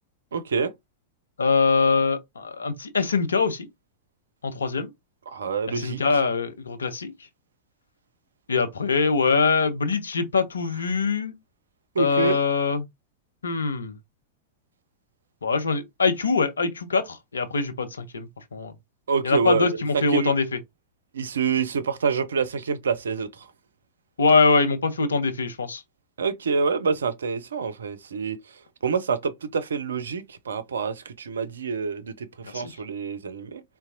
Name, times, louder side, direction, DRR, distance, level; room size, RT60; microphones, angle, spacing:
voice 1, 0.3-0.7 5.3-6.0 12.0-12.4 19.1-20.3 21.1-23.5 26.2-28.4 28.8-33.6, right 5 dB, 70° right, 0.5 m, -27 dB
voice 2, 1.4-3.7 4.4-4.9 5.8-7.1 8.5-11.4 12.0-12.8 13.4-13.9 15.4-18.7 19.2-20.6 24.2-25.8 32.4-32.7, left 4 dB, 75° left, 0.5 m, -23 dB
4.0 x 2.2 x 2.4 m
figure-of-eight pair, 90°, 0 cm